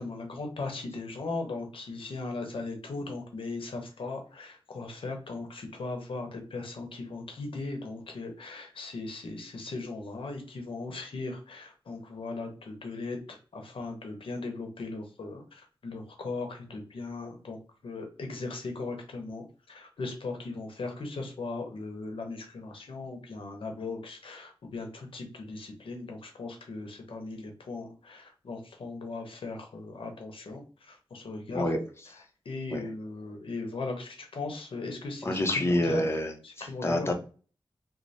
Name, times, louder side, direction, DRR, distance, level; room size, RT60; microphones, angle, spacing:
voice 1, 0.0-17.6 17.8-30.6 30.9-31.7 32.5-36.1 36.6-37.1, left 3 dB, 80° left, 3 dB, 0.8 m, -38 dB
voice 2, 31.5-31.8 32.7-32.8 35.2-37.1, left 1 dB, 30° left, 3 dB, 0.7 m, -28 dB
3.2 x 2.1 x 4.0 m, 0.37 s
wide cardioid pair, 95°, 9 cm